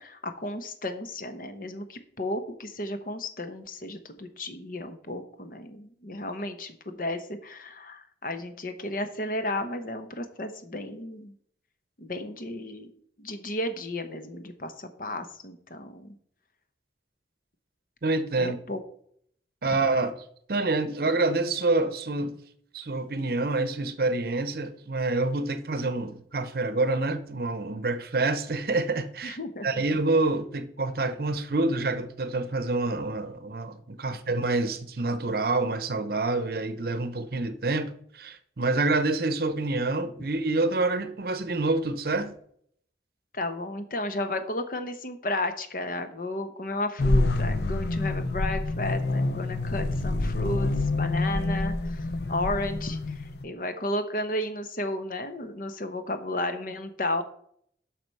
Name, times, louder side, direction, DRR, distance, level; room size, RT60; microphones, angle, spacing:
voice 1, 0.0-11.3 12.0-12.9 13.2-16.1 18.4-18.8 29.2-29.8 34.0-34.1 43.3-57.2, left 1 dB, 50° left, 0.9 m, -33 dB
voice 2, 18.0-18.6 19.6-20.2 20.5-22.4 22.7-42.3, right 2 dB, 55° right, 0.8 m, -27 dB
sound 1, 47.0-53.5, left 2 dB, 70° left, 0.7 m, -27 dB
7.8 x 6.0 x 5.4 m
head